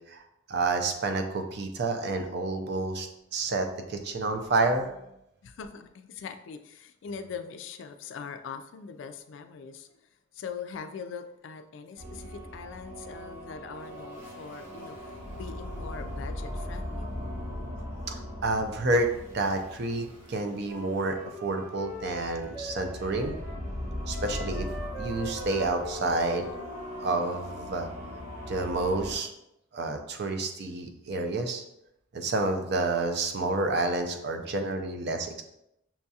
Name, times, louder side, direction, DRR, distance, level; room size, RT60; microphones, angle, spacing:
voice 1, 0.5-4.9 18.1-23.3 24.1-24.7 25.0-26.5 27.0-27.9 28.5-29.3 29.7-31.6 32.1-35.4, right 2 dB, 55° right, 5 dB, 0.5 m, -29 dB
voice 2, 5.4-9.9 10.3-17.1 23.9-24.2, left 6 dB, 65° left, 8 dB, 0.3 m, -42 dB
sound 1, 12.0-29.2, left 1 dB, 75° right, 1.5 m, -39 dB
Wind instrument woodwind instrument, 20.6-23.6 24.1-27.6, equal, 15° right, 0.9 m, -42 dB
5.8 x 2.7 x 2.3 m, 0.83 s
head